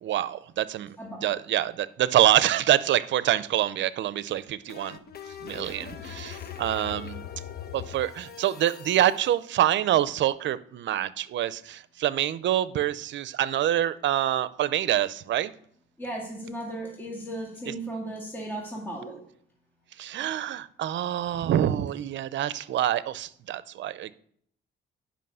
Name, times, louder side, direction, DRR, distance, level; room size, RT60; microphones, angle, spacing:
voice 1, 0.0-5.0 5.4-7.2 7.7-15.5 17.7-17.8 20.0-24.1, right 12 dB, 70° right, 0.6 m, -26 dB
voice 2, 1.0-1.3 6.4-6.5 16.0-19.2, right 1 dB, 10° left, 2.2 m, -36 dB
sound 1, 4.2-9.2, left 8 dB, 50° left, 1.1 m, -41 dB
10.0 x 5.7 x 5.5 m
cardioid pair, 90°, 20 cm